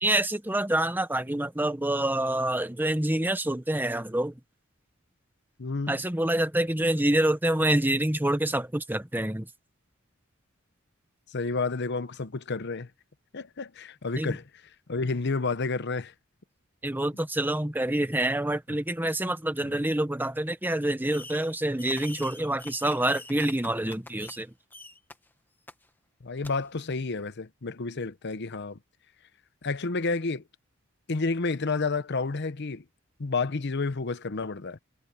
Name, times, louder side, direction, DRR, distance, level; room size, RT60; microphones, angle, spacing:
voice 1, 0.0-4.4 5.9-9.5 14.2-14.4 16.8-24.5, right 1 dB, 10° right, 1.0 m, -27 dB
voice 2, 5.6-6.0 11.3-12.9 13.3-14.4 14.9-16.1 19.6-19.8 26.2-28.8 29.6-30.4 31.1-32.8 33.2-34.8, left 3 dB, 55° left, 0.8 m, -30 dB
Fireworks, 21.1-21.5 21.8-24.4 24.7-25.1 25.7-25.8 26.4-26.5, left 2 dB, 10° left, 1.3 m, -44 dB
head